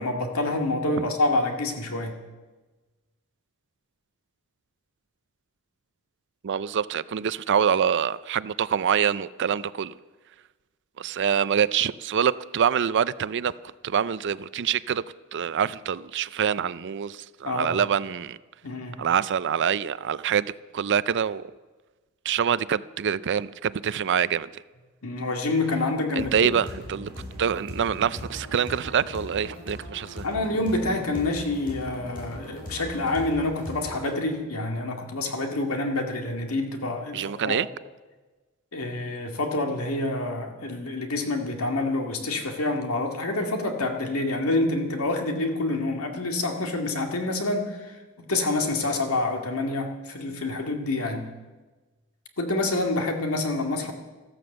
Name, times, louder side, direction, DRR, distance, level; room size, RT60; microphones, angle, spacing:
voice 1, 0.0-2.2 17.4-17.8 18.6-19.1 25.0-26.5 30.2-37.6 38.7-51.3 52.4-53.9, left 2 dB, 70° left, 2.2 m, -27 dB
voice 2, 6.4-9.9 11.0-13.5 13.8-15.0 15.3-18.4 19.0-21.4 22.3-24.5 26.1-27.1 27.4-30.3 37.1-37.7, right 8 dB, 55° right, 0.4 m, -25 dB
sound 1, 26.2-34.2, left 1 dB, 40° left, 5.6 m, -39 dB
14.0 x 13.0 x 7.9 m
head